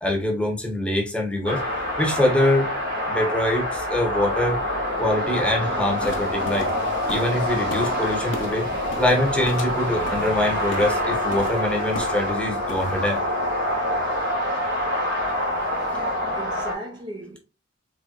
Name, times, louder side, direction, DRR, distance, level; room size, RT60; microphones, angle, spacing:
voice 1, 0.0-1.6 2.0-2.7 3.1-4.6 5.0-6.7 7.1-8.7 9.0-13.2, left 1 dB, 5° left, 1.0 m, -24 dB
sound 1, 1.4-16.7, left 1 dB, 70° right, 2.4 m, -26 dB
sound 2, 6.0-12.4 12.6-13.2, left 2 dB, 70° left, 0.9 m, -38 dB
voice 2, 15.2-17.4, right 1 dB, 20° right, 0.6 m, -38 dB
4.4 x 3.4 x 2.4 m
head